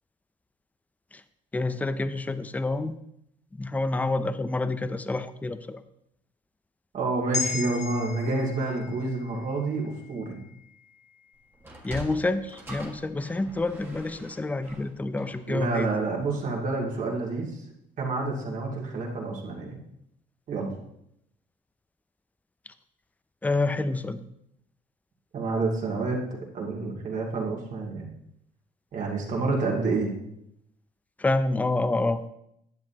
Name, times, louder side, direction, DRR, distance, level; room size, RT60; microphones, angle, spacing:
voice 1, 1.5-3.0 3.6-5.8 11.8-15.9 23.4-24.2 31.2-32.2, left 2 dB, 10° left, 12 dB, 0.4 m, -28 dB
voice 2, 6.9-10.4 15.1-17.6 18.0-19.8 20.5-20.7 25.3-28.1 28.9-30.1, right 3 dB, 50° right, -1 dB, 2.2 m, -29 dB
sound 1, 7.3-11.8 12.2-12.4, left 5 dB, 40° left, 1.2 m, -37 dB
Sliding door, 11.5-16.2, right 1 dB, 15° right, 1.7 m, -44 dB
10.5 x 7.3 x 2.8 m, 0.76 s
cardioid pair, 110°, 17 cm